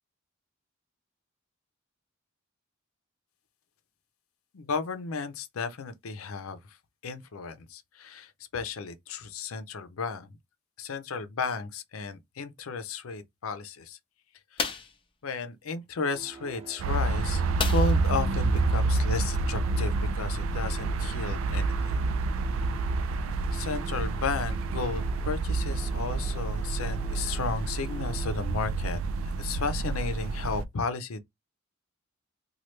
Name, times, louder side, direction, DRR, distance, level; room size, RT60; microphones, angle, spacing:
voice 1, 4.5-6.6 7.0-10.3 10.8-14.0 14.5-14.8 15.2-22.0 23.5-31.2, left 4 dB, 80° left, 0.5 m, -34 dB
sound 1, 14.6-15.0 17.6-18.2 18.5-18.6 19.0-19.2, left 5 dB, 25° left, 0.5 m, -32 dB
sound 2, 16.1-28.4, right 4 dB, 30° right, 0.8 m, -47 dB
sound 3, 16.8-30.6, right 3 dB, 70° right, 0.3 m, -28 dB
3.1 x 2.3 x 3.1 m
head